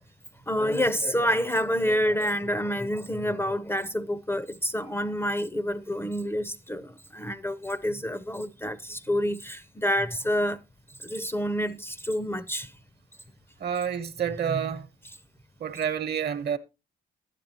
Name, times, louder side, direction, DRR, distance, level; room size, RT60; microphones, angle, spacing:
voice 1, 0.5-10.6 11.0-12.7, equal, 10° left, 0.5 m, -28 dB
voice 2, 13.6-14.9 15.6-16.6, right 8 dB, 55° right, 1.0 m, -28 dB
11.5 x 9.7 x 2.8 m
cardioid pair, 90°, 20 cm